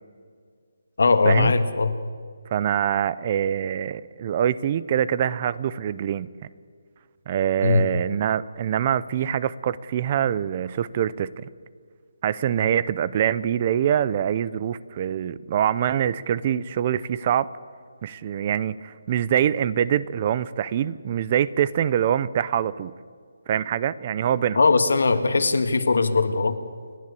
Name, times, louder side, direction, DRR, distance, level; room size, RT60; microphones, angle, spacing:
voice 1, 1.0-1.9 7.6-7.8 24.6-26.6, left 4 dB, 75° left, 9 dB, 1.8 m, -20 dB
voice 2, 2.5-6.3 7.3-11.5 12.2-17.5 18.0-22.9 23.5-24.6, right 9 dB, 25° right, 19 dB, 0.4 m, -24 dB
30.0 x 10.5 x 8.3 m, 2.1 s
hypercardioid pair, 175°, 0 cm